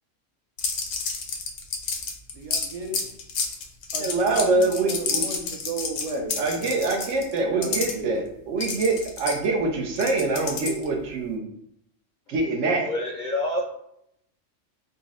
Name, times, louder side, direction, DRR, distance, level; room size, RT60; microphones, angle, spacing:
sound 1, 0.6-7.9 8.6-11.0, left 5 dB, 90° left, 1.0 m, -29 dB
voice 1, 2.3-3.1 3.9-6.7 7.5-8.2, right 2 dB, 50° right, 1 dB, 0.4 m, -35 dB
voice 2, 4.0-5.2 6.4-11.4 12.3-12.9, right 3 dB, 85° right, 1 dB, 1.1 m, -24 dB
voice 3, 12.9-13.6, left 1 dB, 55° left, 0 dB, 0.5 m, -27 dB
4.0 x 2.1 x 3.6 m, 0.74 s
omnidirectional pair, 1.3 m